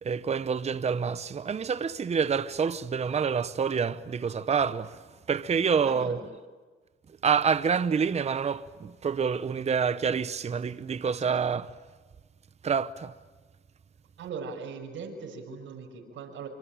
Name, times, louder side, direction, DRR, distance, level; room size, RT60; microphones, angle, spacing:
voice 1, 0.0-6.2 7.2-11.7 12.6-13.1, right 6 dB, 35° right, 0.8 m, -27 dB
voice 2, 5.5-6.1 14.2-16.5, right 5 dB, 75° right, 5.9 m, -39 dB
26.0 x 26.0 x 8.8 m
cardioid pair, 90°, 20 cm